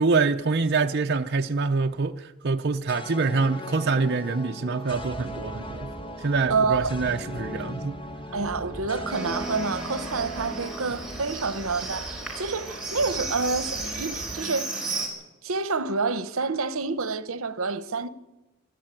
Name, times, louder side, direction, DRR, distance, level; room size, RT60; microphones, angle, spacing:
voice 1, 0.0-5.9 6.2-8.0, right 4 dB, 50° right, 0.7 m, -25 dB
sound 1, 2.9-12.2, equal, 25° left, 1.2 m, -38 dB
sound 2, 4.9-14.3, right 1 dB, 20° right, 4.5 m, -44 dB
voice 2, 6.5-7.0 8.3-14.8 15.4-18.1, right 4 dB, 75° right, 1.0 m, -28 dB
Livestock farm animals working animals, 9.1-15.1, right 3 dB, ahead, 5.1 m, -35 dB
25.5 x 11.5 x 9.0 m
head